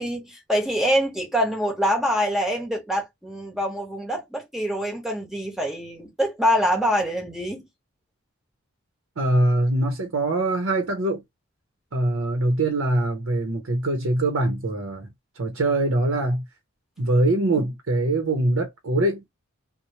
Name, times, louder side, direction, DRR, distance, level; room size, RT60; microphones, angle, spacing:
voice 1, 0.0-7.6, equal, ahead, 1.0 m, -25 dB
voice 2, 9.2-11.2 11.9-16.4 17.0-19.2, right 2 dB, 70° right, 0.8 m, -23 dB
3.1 x 2.1 x 2.7 m
head